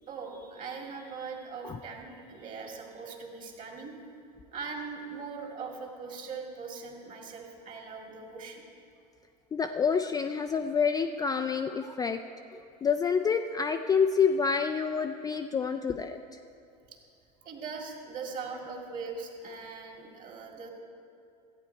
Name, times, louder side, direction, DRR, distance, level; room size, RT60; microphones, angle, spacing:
voice 1, 0.0-3.9 4.5-8.6 17.4-20.7, right 4 dB, 40° right, 1 dB, 2.1 m, -40 dB
voice 2, 9.5-12.2 12.5-16.4, left 6 dB, 20° left, 6 dB, 0.3 m, -28 dB
13.5 x 8.9 x 4.4 m, 2.6 s
hypercardioid pair, 90°, 21 cm